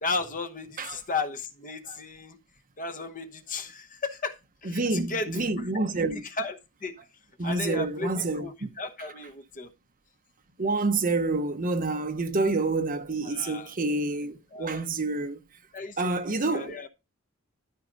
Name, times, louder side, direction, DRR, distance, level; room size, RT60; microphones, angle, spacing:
voice 1, 0.0-2.4 2.8-5.8 6.1-7.0 7.4-9.7 13.2-13.7 14.5-14.9 15.7-16.9, left 3 dB, 40° left, 1.1 m, -35 dB
voice 2, 4.6-6.2 7.4-8.7 10.6-15.4 16.0-16.7, right 3 dB, 40° right, 1.0 m, -28 dB
13.0 x 5.0 x 3.9 m
head